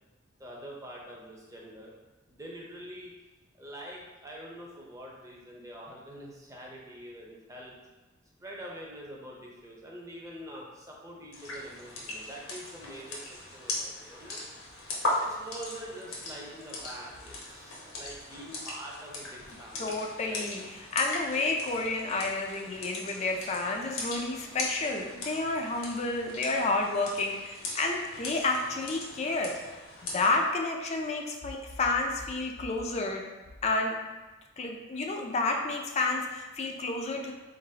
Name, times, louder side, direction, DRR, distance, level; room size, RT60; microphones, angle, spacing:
voice 1, 0.4-1.9 2.3-3.1 3.6-7.8 8.4-14.4 15.2-20.0 20.3-20.5, right 1 dB, 15° right, -2 dB, 0.7 m, -45 dB
sound 1, 11.3-30.4, left 2 dB, 80° left, 1.0 m, -39 dB
voice 2, 19.8-29.6 30.0-33.2 33.6-34.0 34.6-37.3, left 3 dB, 30° left, 2 dB, 0.4 m, -30 dB
3.9 x 3.8 x 2.8 m, 1.2 s
head